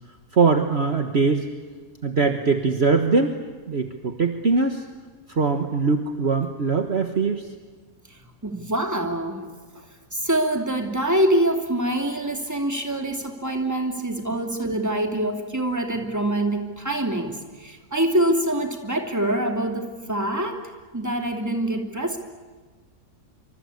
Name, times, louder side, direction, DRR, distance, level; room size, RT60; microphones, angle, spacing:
voice 1, 0.3-1.5 2.0-3.4 3.7-4.8 5.3-7.5, right 4 dB, 45° right, 5 dB, 1.6 m, -21 dB
voice 2, 8.4-9.5 10.1-20.6 20.9-22.2, right 1 dB, 10° right, 3 dB, 2.7 m, -25 dB
26.0 x 25.0 x 8.5 m, 1.4 s
omnidirectional pair, 1.6 m